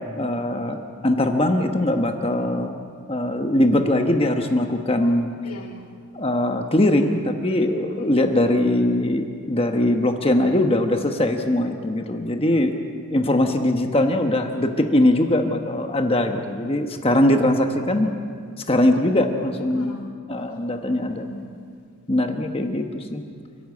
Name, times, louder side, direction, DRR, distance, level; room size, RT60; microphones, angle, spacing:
voice 1, 0.0-2.8 3.1-5.3 6.1-12.8 13.1-18.1 18.7-20.0 20.3-21.3 22.1-23.2, left 1 dB, 25° left, 5 dB, 1.1 m, -21 dB
voice 2, 5.4-5.9 7.9-8.3 19.7-21.8, equal, 85° left, 1 dB, 1.9 m, -41 dB
29.5 x 11.5 x 8.5 m, 2.1 s
head